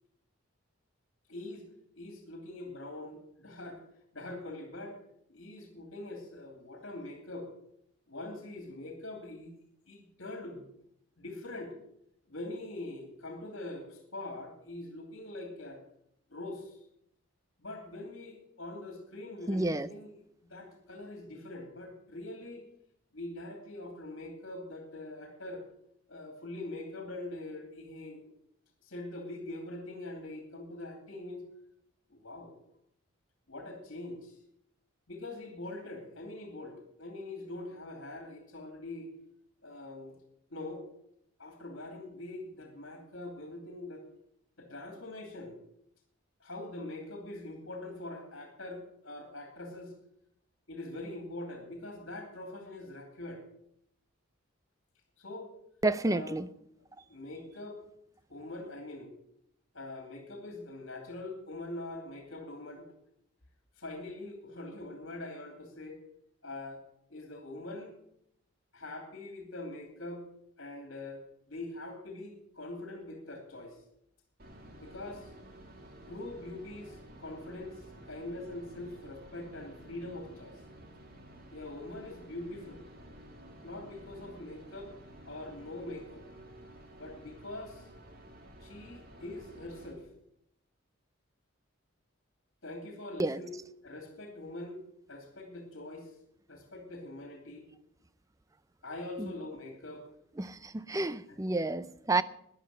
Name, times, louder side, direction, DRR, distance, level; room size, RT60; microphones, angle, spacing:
voice 1, 1.3-1.7 2.0-3.8 4.1-5.0 5.3-7.5 8.1-9.5 9.9-10.7 11.2-11.8 12.3-15.8 16.3-16.8 17.6-20.2 20.4-22.6 23.1-25.6 26.1-28.3 28.8-31.4 32.1-32.5 33.5-34.4 35.1-39.1 39.6-40.1 40.5-40.9 41.4-44.0 44.6-45.6 46.4-49.9 50.7-53.4 55.2-55.5 56.0-56.3 57.1-57.8 58.3-59.1 59.7-62.9 63.8-66.0 66.4-66.8 67.1-67.9 68.7-70.2 70.6-73.8 74.8-75.3 76.1-80.6 81.5-82.8 83.6-84.9 85.3-86.3 86.9-87.9 88.6-90.1 92.6-93.5 93.8-94.8 95.1-96.1 96.5-97.7 98.8-100.1 101.3-101.4, left 2 dB, 65° left, 2.7 m, -43 dB
voice 2, 19.5-19.9 55.8-56.5 93.2-93.4 99.2-99.3 100.4-102.2, right 2 dB, 15° right, 0.5 m, -30 dB
sound 1, 74.4-89.9, right 1 dB, 45° right, 2.4 m, -52 dB
13.0 x 10.0 x 7.5 m
head